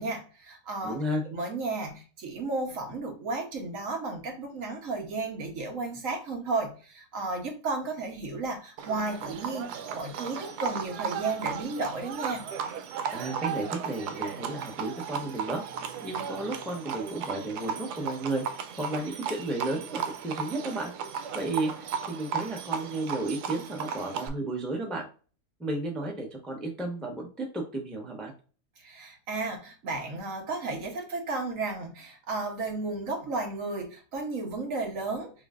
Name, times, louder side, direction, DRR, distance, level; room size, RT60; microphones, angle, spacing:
voice 1, 0.0-1.0 1.3-12.4 28.8-35.3, right 3 dB, 60° right, 3 dB, 1.2 m, -33 dB
voice 2, 0.8-1.2 13.1-15.6 16.0-18.4 18.8-20.9 21.3-25.1 25.6-28.3, right 2 dB, ahead, 0 dB, 0.6 m, -33 dB
Livestock farm animals working animals, 8.8-24.3, right 7 dB, 85° right, 1.2 m, -35 dB
6.3 x 2.4 x 2.4 m, 0.37 s
omnidirectional pair, 1.7 m